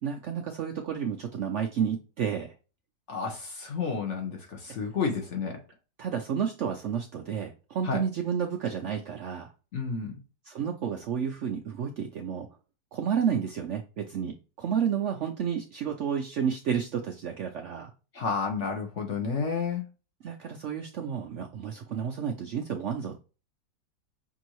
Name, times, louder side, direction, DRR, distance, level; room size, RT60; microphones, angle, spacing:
voice 1, 0.0-2.5 6.0-9.5 10.5-12.5 12.9-17.9 20.2-23.2, right 7 dB, 80° right, 0.6 m, -31 dB
voice 2, 3.1-5.6 7.8-8.0 9.7-10.2 18.1-19.8, left 5 dB, 50° left, 1.0 m, -31 dB
6.1 x 2.7 x 2.9 m
omnidirectional pair, 1.9 m